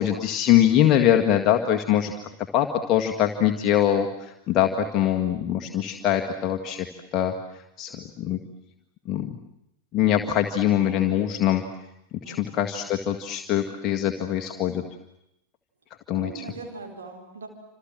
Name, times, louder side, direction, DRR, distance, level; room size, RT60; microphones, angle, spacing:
voice 1, 0.0-2.1 2.5-6.9 7.1-7.3 7.8-8.4 9.1-9.4 9.9-11.6 12.3-14.8 16.1-16.5, left 10 dB, 35° left, 3 dB, 1.9 m, -23 dB
voice 2, 12.2-12.9 16.1-17.5, right 3 dB, 70° right, 4 dB, 4.3 m, -41 dB
28.5 x 27.0 x 7.7 m, 0.83 s
figure-of-eight pair, 90°, 0 cm